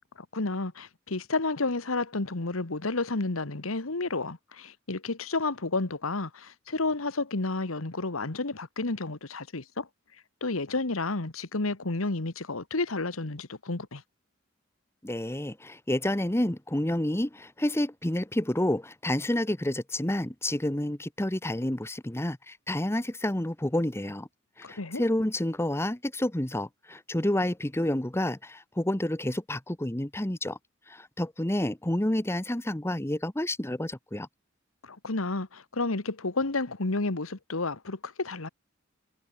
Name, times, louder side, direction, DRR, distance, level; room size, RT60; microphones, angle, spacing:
voice 1, 0.3-9.9 10.4-14.0 24.6-25.0 34.8-38.5, left 3 dB, 85° left, 1.6 m, -31 dB
voice 2, 15.0-24.3 24.6-30.6 30.9-34.3, left 1 dB, 10° left, 1.1 m, -29 dB
head